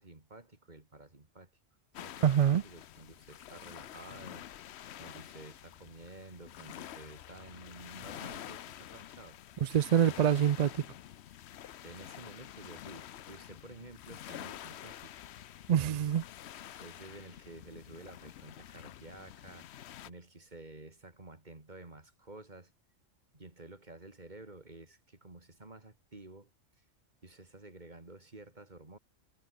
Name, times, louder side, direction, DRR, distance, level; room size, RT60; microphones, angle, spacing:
voice 1, 0.0-1.5 2.0-4.7 5.0-9.4 10.0-10.2 11.8-15.1 16.8-22.7 23.3-26.5 26.8-26.9 27.2-29.0, right 2 dB, 35° right, 3.2 m, -51 dB
sound 1, 1.9-20.1, left 11 dB, 65° left, 0.9 m, -48 dB
voice 2, 2.2-2.6 9.6-10.8 15.7-16.2, right 9 dB, 65° right, 0.4 m, -25 dB
omnidirectional pair, 1.3 m